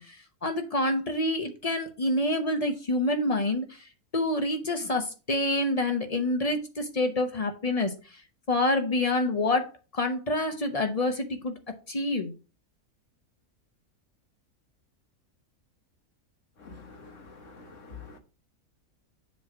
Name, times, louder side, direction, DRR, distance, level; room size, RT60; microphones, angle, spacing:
voice 1, 0.0-3.8 4.1-8.2 8.5-11.5 11.9-12.3, left 1 dB, 35° left, 0.7 m, -27 dB
voice 2, 16.6-18.2, left 4 dB, 55° left, 1.6 m, -46 dB
7.3 x 3.0 x 6.0 m
omnidirectional pair, 1.6 m